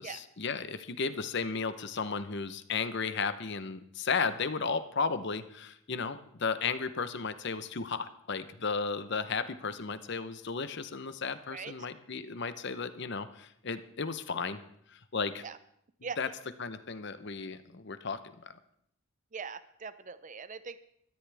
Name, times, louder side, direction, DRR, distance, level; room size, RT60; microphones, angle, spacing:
voice 1, 0.0-14.6 14.9-15.4 16.2-16.3 16.6-18.5, left 5 dB, 55° left, 11 dB, 0.8 m, -34 dB
voice 2, 19.3-20.8, right 5 dB, 35° right, 13 dB, 0.5 m, -41 dB
21.5 x 13.5 x 3.5 m, 0.71 s
head